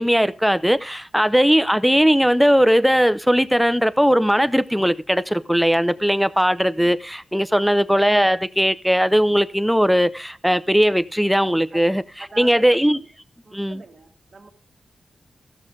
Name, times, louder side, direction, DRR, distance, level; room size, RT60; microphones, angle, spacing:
voice 1, 0.0-12.0 12.4-13.0 13.5-13.8, equal, ahead, 0.5 m, -18 dB
voice 2, 7.5-7.9 11.7-11.8 12.2-12.8 13.4-14.5, right 3 dB, 45° right, 1.9 m, -42 dB
15.5 x 6.5 x 3.7 m
wide cardioid pair, 115°, 0 cm